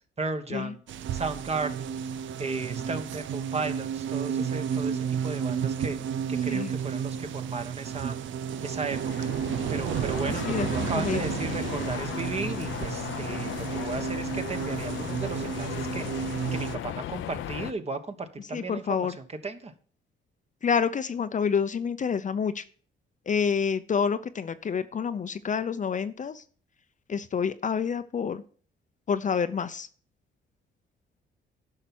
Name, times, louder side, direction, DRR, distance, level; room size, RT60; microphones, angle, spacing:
voice 1, 0.2-0.8 1.1-2.0 2.4-6.0 6.3-8.2 8.6-9.3 9.7-16.0 16.5-19.7, right 3 dB, 30° right, 8 dB, 1.3 m, -35 dB
sound 1, 0.9-16.8, right 8 dB, 75° right, 0.6 m, -32 dB
sound 2, 8.5-17.7, left 11 dB, 80° left, 0.7 m, -36 dB
voice 2, 10.2-11.2 18.5-19.2 20.6-22.6 23.3-26.4 27.1-28.4 29.1-29.9, left 6 dB, 40° left, 11 dB, 0.7 m, -28 dB
11.0 x 5.9 x 6.1 m, 0.43 s
cardioid pair, 90°, 20 cm